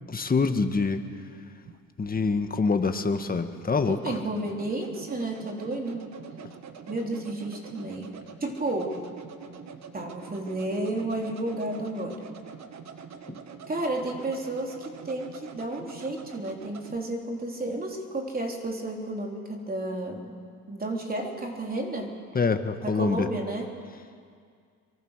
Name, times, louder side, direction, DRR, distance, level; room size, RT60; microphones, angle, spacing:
voice 1, 0.1-1.0 2.0-4.2 13.3-13.4 22.3-23.3, left 4 dB, 30° left, 7 dB, 1.6 m, -25 dB
sound 1, 1.6-17.0, right 6 dB, 65° right, 1.8 m, -45 dB
voice 2, 3.8-6.1 6.9-9.0 9.9-12.2 13.7-20.4 20.7-22.2 22.8-23.7, right 2 dB, 30° right, 1 dB, 3.6 m, -32 dB
23.5 x 23.5 x 6.6 m, 2.2 s
cardioid pair, 90°, 30 cm